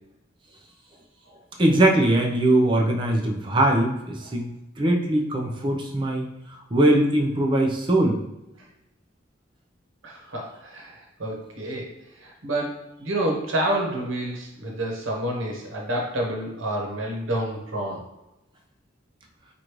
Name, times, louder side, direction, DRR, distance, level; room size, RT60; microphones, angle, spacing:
voice 1, 1.6-4.5 4.8-6.3 6.7-8.2, right 1 dB, 25° right, 1 dB, 0.6 m, -21 dB
voice 2, 10.0-18.0, right 1 dB, 85° right, 0 dB, 1.0 m, -29 dB
4.9 x 2.5 x 3.0 m, 0.95 s
head